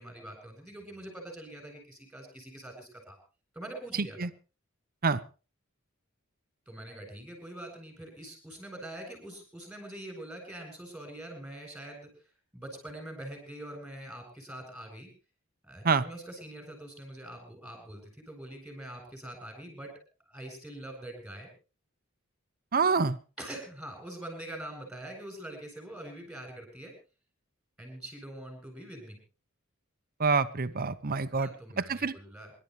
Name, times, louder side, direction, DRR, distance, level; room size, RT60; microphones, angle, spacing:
voice 1, 0.0-3.2 3.5-4.3 6.7-12.1 12.5-15.1 15.6-19.9 20.3-21.5 23.4-26.9 27.8-29.2 31.3-32.5, right 1 dB, 5° right, 4 dB, 7.8 m, -44 dB
voice 2, 22.7-23.2 30.2-31.5 31.8-32.1, right 4 dB, 45° right, 12 dB, 0.8 m, -26 dB
27.0 x 12.0 x 3.3 m, 0.34 s
head